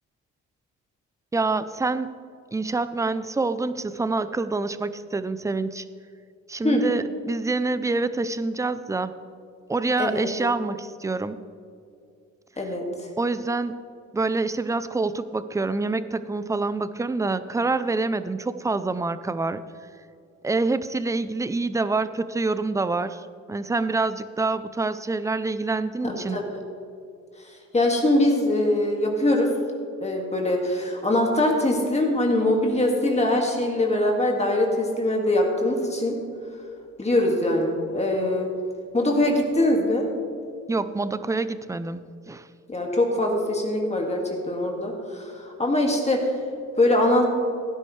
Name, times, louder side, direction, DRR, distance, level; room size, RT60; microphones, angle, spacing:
voice 1, 1.3-2.2 2.5-5.9 6.5-9.1 9.7-11.4 13.2-13.8 14.1-19.6 20.4-26.4 40.7-42.5, right 3 dB, 10° right, 13 dB, 0.5 m, -26 dB
voice 2, 27.7-29.5 30.0-36.2 37.0-38.5 38.9-40.1 42.7-46.3 46.8-47.3, left 1 dB, 20° left, 0 dB, 2.0 m, -22 dB
16.0 x 9.9 x 3.3 m, 2.4 s
cardioid pair, 90°, 30 cm